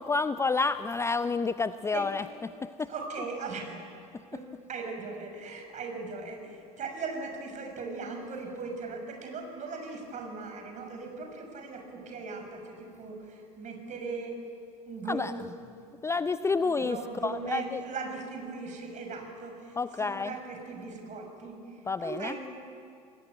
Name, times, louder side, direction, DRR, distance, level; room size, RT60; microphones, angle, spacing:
voice 1, 0.0-2.9 4.3-4.4 15.1-15.6 16.0-17.0 17.2-17.8 19.8-20.4 21.9-22.4, left 4 dB, 15° left, 14 dB, 0.5 m, -30 dB
voice 2, 2.9-3.7 4.3-14.4 14.9-15.8 16.6-22.6, right 4 dB, 35° right, 4 dB, 6.1 m, -39 dB
28.0 x 20.5 x 9.2 m, 2.5 s
figure-of-eight pair, 65°, 20 cm